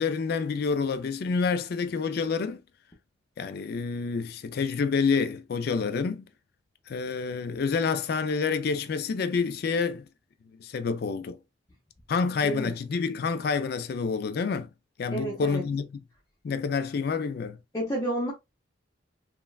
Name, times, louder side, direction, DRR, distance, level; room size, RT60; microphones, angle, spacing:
voice 1, 0.0-2.6 3.4-6.3 6.9-10.0 10.6-11.4 12.1-14.7 15.0-15.9 16.4-17.6, left 5 dB, 60° left, 0.4 m, -28 dB
voice 2, 15.1-15.7 17.7-18.3, right 1 dB, 20° left, 0.6 m, -30 dB
3.1 x 2.2 x 2.3 m
head